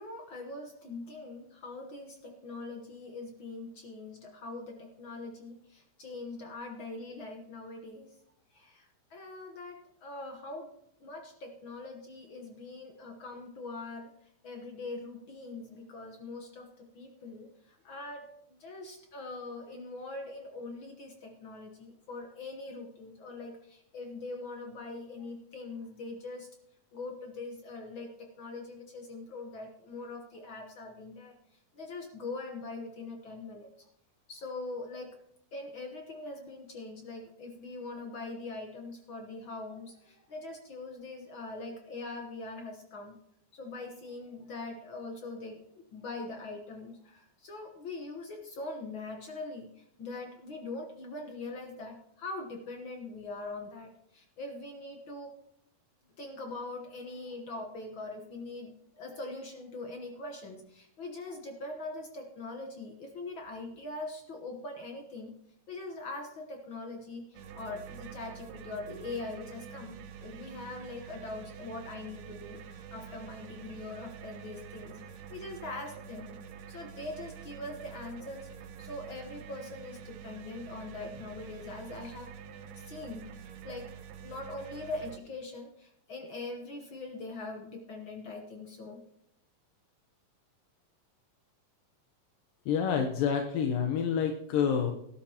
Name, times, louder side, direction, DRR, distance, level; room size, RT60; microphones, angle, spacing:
voice 1, 0.0-8.1 8.5-10.7 11.0-14.1 14.4-26.5 26.9-31.4 31.7-33.9 34.3-35.2 35.5-43.2 43.5-55.3 56.2-65.3 65.7-76.3 76.7-78.5 78.8-82.3 82.8-83.9 84.2-89.0, left 2 dB, 65° left, 3 dB, 1.2 m, -42 dB
sound 1, 67.3-85.2, right 8 dB, 85° right, 2.7 m, -47 dB
voice 2, 92.7-94.9, left 7 dB, 80° left, 4 dB, 2.6 m, -28 dB
17.5 x 12.0 x 2.9 m, 0.75 s
omnidirectional pair, 3.9 m